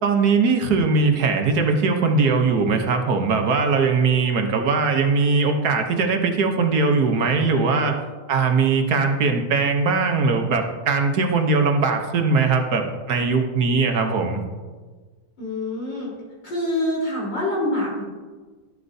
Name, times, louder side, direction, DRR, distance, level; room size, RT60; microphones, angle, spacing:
voice 1, 0.0-8.0 8.3-14.4, right 4 dB, 65° right, 4 dB, 1.4 m, -20 dB
voice 2, 15.4-16.1 16.4-18.0, left 1 dB, 85° left, -4 dB, 4.3 m, -25 dB
11.5 x 11.0 x 2.7 m, 1.4 s
omnidirectional pair, 1.9 m